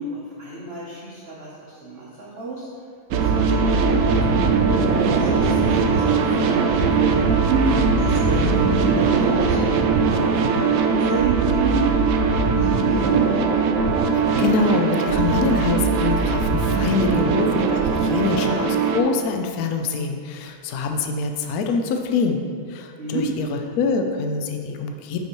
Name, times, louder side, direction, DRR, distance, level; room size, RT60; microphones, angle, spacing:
voice 1, 0.0-2.7 3.1-4.4 5.2-11.8 12.3-13.4 20.7-21.0 23.0-23.2, right 3 dB, 45° right, -6 dB, 0.8 m, -31 dB
sound 1, 3.1-19.0, right 4 dB, 75° right, 0.7 m, -20 dB
voice 2, 14.1-22.4 22.7-23.5 23.8-25.2, left 4 dB, 70° left, 4 dB, 0.9 m, -25 dB
8.1 x 5.2 x 3.0 m, 2.1 s
omnidirectional pair, 2.0 m